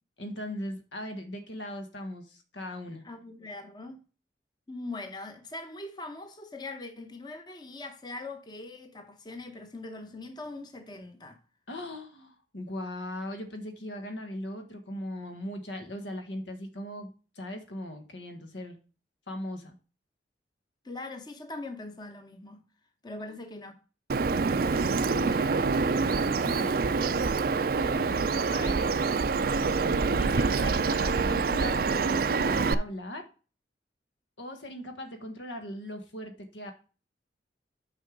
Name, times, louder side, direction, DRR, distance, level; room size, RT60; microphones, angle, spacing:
voice 1, 0.2-3.0 11.7-18.8 19.3-19.7 23.2-23.3 25.0-25.5 26.4-26.8 27.7-29.1 30.1-33.3 34.4-36.7, equal, 85° left, 1.5 m, -39 dB
voice 2, 3.0-4.0 4.7-11.4 20.8-22.6 23.0-23.8, left 2 dB, 25° left, 0.8 m, -41 dB
Bird vocalization bird call bird song, 24.1-32.7, right 4 dB, 55° right, 0.4 m, -26 dB
6.4 x 5.5 x 5.1 m
head